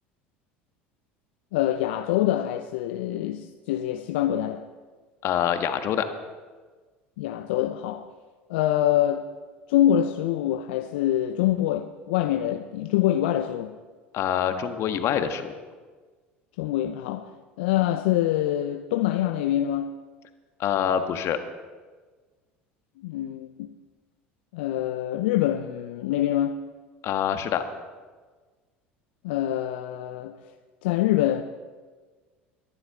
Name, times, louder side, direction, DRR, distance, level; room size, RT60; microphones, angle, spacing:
voice 1, 1.5-4.7 7.2-8.1 8.5-9.3 9.7-13.8 16.6-20.0 23.0-23.7 24.5-26.6 29.2-30.4 30.8-31.4, left 12 dB, 70° left, 0.6 m, -25 dB
voice 2, 5.2-6.0 14.1-15.5 20.6-21.4 27.0-27.6, left 9 dB, 50° left, 1.4 m, -25 dB
23.0 x 11.0 x 3.7 m
hypercardioid pair, 70°, 6 cm